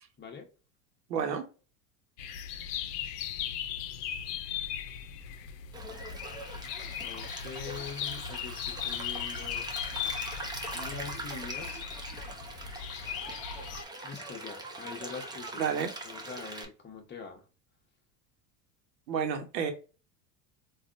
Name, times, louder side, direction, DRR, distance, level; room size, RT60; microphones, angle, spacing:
voice 1, 1.1-1.4 15.6-15.9 19.1-19.7, right 7 dB, 90° right, 0.9 m, -30 dB
sound 1, 2.2-13.8, left 9 dB, 70° left, 0.7 m, -38 dB
Stream, 5.7-16.7, right 2 dB, 10° right, 0.5 m, -42 dB
voice 2, 7.0-9.7 10.7-11.8 14.0-15.6 16.0-17.4, left 5 dB, 20° left, 1.0 m, -43 dB
3.3 x 2.4 x 2.4 m
hypercardioid pair, 90°, 49 cm